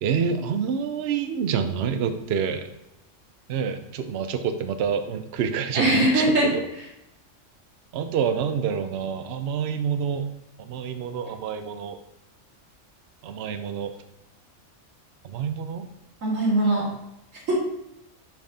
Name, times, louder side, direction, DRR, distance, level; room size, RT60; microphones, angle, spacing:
voice 1, 0.0-2.7 3.5-6.6 7.9-10.3 10.6-12.0 13.2-13.9 15.2-15.9, right 7 dB, 60° right, 8 dB, 0.8 m, -27 dB
voice 2, 5.7-6.5 16.2-16.9 17.5-17.6, right 1 dB, 80° right, -4 dB, 2.4 m, -21 dB
6.8 x 5.8 x 2.8 m, 0.84 s
omnidirectional pair, 1.3 m